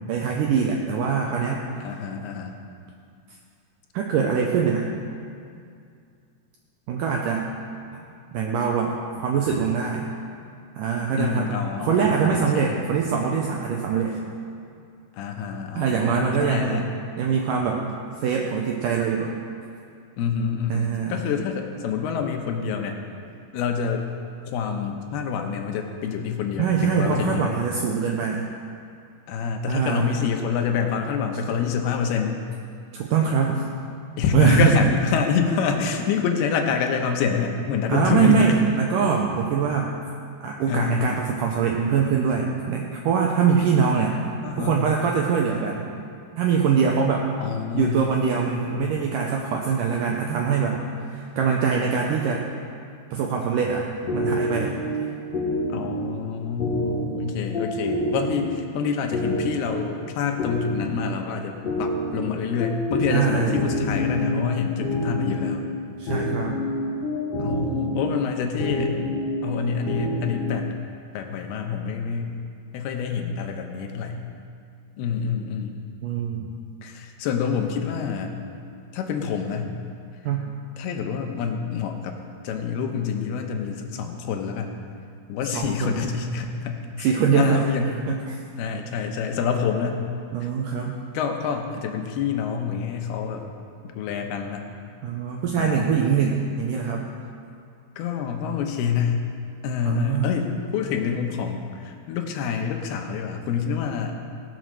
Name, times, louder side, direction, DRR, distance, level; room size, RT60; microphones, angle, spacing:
voice 1, 0.1-1.6 3.9-4.9 6.9-7.5 7.9-8.0 8.3-10.1 10.8-14.2 15.8-16.9 17.2-17.9 18.2-19.3 20.7-21.2 26.6-28.5 29.7-30.1 32.9-33.6 34.3-34.8 37.9-39.9 40.4-44.2 44.6-45.9 46.4-47.3 47.7-50.8 51.1-52.5 53.1-54.8 63.1-63.6 66.0-66.6 76.0-76.5 80.3-80.5 85.5-86.0 87.0-87.6 88.1-88.4 90.3-91.0 95.0-97.1 99.9-100.3, right 6 dB, 75° right, 0 dB, 2.0 m, -23 dB
voice 2, 1.8-2.6 11.2-12.8 15.2-16.9 20.2-23.0 23.5-24.1 24.5-27.6 29.3-32.4 34.2-38.5 40.7-41.2 44.4-44.8 47.4-48.9 55.7-65.7 66.1-66.3 67.4-69.0 69.4-70.7 71.1-72.4 72.7-74.3 75.0-75.8 76.8-78.4 78.9-79.8 80.8-82.2 82.4-84.8 85.3-88.0 88.6-90.0 90.4-90.5 91.1-93.4 93.9-94.7 95.6-96.0 98.0-99.3 99.6-104.3, left 6 dB, 80° left, 4 dB, 2.9 m, -27 dB
sound 1, 54.1-70.8, left 1 dB, 50° left, 2.8 m, -28 dB
18.0 x 6.3 x 6.2 m, 2.4 s
omnidirectional pair, 4.7 m